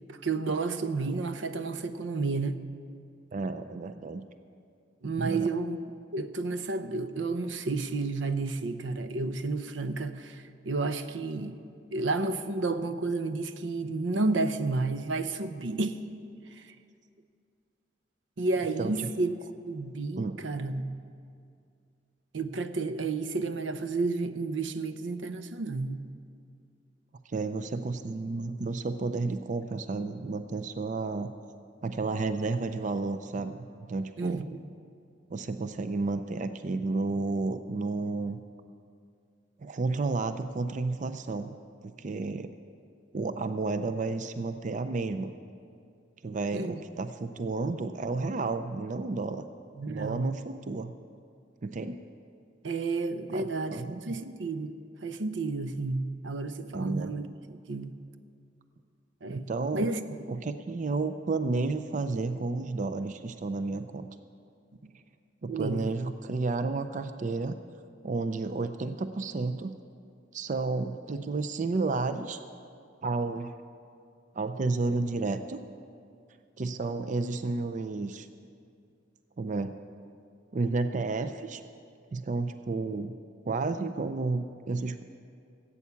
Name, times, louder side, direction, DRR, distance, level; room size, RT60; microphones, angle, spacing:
voice 1, 0.1-2.6 5.0-5.8 6.1-11.6 11.9-16.0 16.6-16.7 18.4-19.3 19.7-20.9 22.3-26.0 34.2-34.6 46.5-46.8 49.8-50.4 52.6-54.7 55.0-57.9 59.2-60.2 65.4-65.9, right 3 dB, 80° right, 10 dB, 0.6 m, -31 dB
voice 2, 3.3-4.2 5.2-5.5 18.8-18.9 20.2-20.4 27.3-31.3 31.8-34.4 35.3-38.4 39.6-41.5 41.8-42.5 43.1-45.3 46.2-49.4 49.9-50.9 51.6-52.0 53.3-54.2 56.7-57.1 59.3-59.9 60.3-64.1 65.4-67.6 68.0-69.7 70.3-72.4 73.0-73.5 74.3-75.6 76.6-78.3 79.4-79.7 80.5-81.6 82.1-83.1 83.4-85.0, right 3 dB, 40° right, 10 dB, 0.4 m, -31 dB
15.5 x 8.5 x 6.9 m, 2.4 s
head